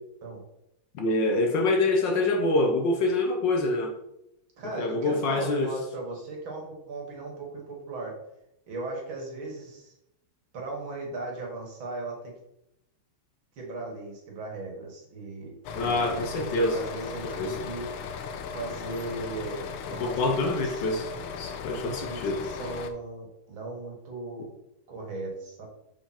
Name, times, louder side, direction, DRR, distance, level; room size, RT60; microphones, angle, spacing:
voice 1, 0.9-3.9 4.8-5.7 15.7-16.8 17.3-17.5 19.9-21.1 21.4-22.4, left 2 dB, 65° left, 4 dB, 1.5 m, -26 dB
voice 2, 4.6-8.2 8.7-9.9 10.5-12.3 13.6-17.9 18.5-21.3 21.8-24.5 24.9-25.7, right 2 dB, 70° right, 0 dB, 2.5 m, -37 dB
sound 1, 15.6-22.9, left 6 dB, 90° left, 1.5 m, -37 dB
6.3 x 5.0 x 4.3 m, 0.81 s
omnidirectional pair, 2.3 m